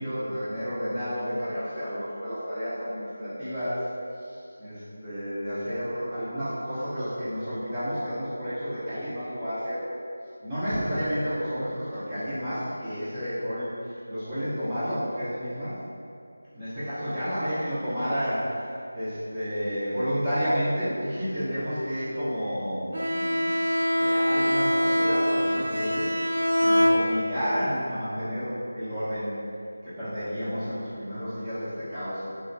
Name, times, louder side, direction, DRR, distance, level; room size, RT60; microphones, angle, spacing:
voice 1, 0.0-3.9 4.2-9.8 10.4-13.7 14.1-15.7 16.5-23.5 24.0-26.2 26.6-29.4 29.8-32.3, equal, 15° right, -15 dB, 0.6 m, -31 dB
Bowed string instrument, 22.9-27.5, equal, 60° right, 0.4 m, -24 dB
2.8 x 2.2 x 2.5 m, 2.4 s
figure-of-eight pair, 170°, 0 cm